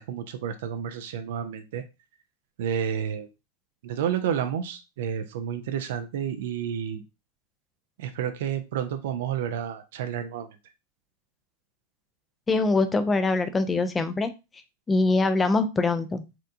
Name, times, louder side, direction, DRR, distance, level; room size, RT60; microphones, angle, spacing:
voice 1, 0.0-1.8 2.6-3.3 3.8-7.0 8.0-10.5, right 8 dB, 55° right, 8 dB, 0.5 m, -30 dB
voice 2, 12.5-14.3 14.9-16.2, left 3 dB, 15° left, 11 dB, 0.5 m, -23 dB
4.4 x 3.6 x 2.6 m, 0.26 s
figure-of-eight pair, 90°, 0 cm